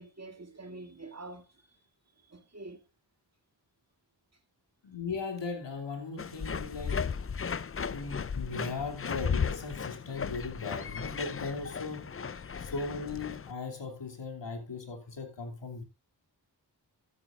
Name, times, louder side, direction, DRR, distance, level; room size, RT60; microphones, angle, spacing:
voice 1, 0.0-1.8 2.2-2.8 12.4-12.6, right 2 dB, 35° right, 2.4 m, -47 dB
voice 2, 4.8-7.1 7.8-12.2 12.6-15.8, left 4 dB, 80° left, 2.8 m, -38 dB
sound 1, 6.2-13.5, left 6 dB, 30° left, 0.5 m, -35 dB
13.0 x 9.7 x 2.5 m
wide cardioid pair, 60°, 43 cm